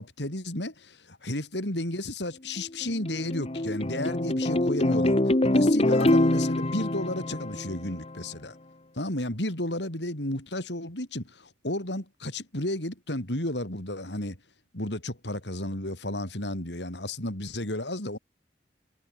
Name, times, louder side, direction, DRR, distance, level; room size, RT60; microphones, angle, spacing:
voice 1, 0.0-8.6 8.9-14.4 14.7-18.2, left 1 dB, 75° left, 6.4 m, -33 dB
sound 1, 2.6-8.2, left 1 dB, 35° left, 1.4 m, -25 dB
head